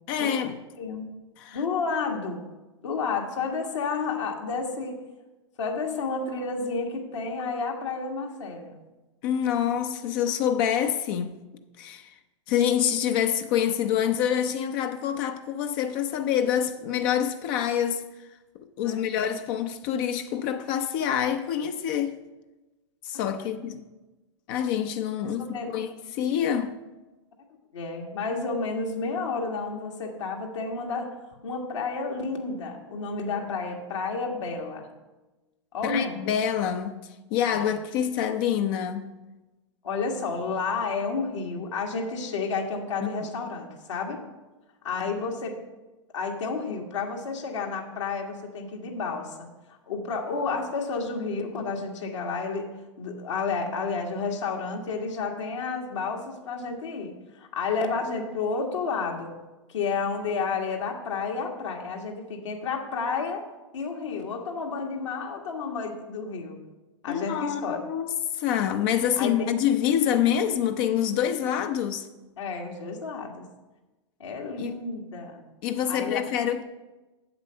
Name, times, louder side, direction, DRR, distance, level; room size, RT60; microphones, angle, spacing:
voice 1, 0.1-0.6 1.4-1.6 9.2-11.4 11.8-12.1 12.5-18.0 18.8-22.2 23.0-23.8 24.5-26.8 35.8-37.0 37.3-39.1 67.1-72.1 74.6-74.8 75.6-76.6, left 9 dB, 45° left, 0.6 m, -26 dB
voice 2, 1.5-2.4 2.8-5.0 5.6-8.8 18.8-19.0 23.4-23.5 25.2-25.8 27.7-31.1 31.4-34.9 35.7-36.2 37.5-37.7 39.8-44.2 44.8-45.6 46.1-52.7 53.0-59.3 59.7-63.4 63.7-66.6 67.0-67.8 69.2-69.5 72.4-73.5 74.2-75.4 75.9-76.2, left 4 dB, 70° left, 1.7 m, -31 dB
8.0 x 7.5 x 5.5 m
figure-of-eight pair, 100°, 16 cm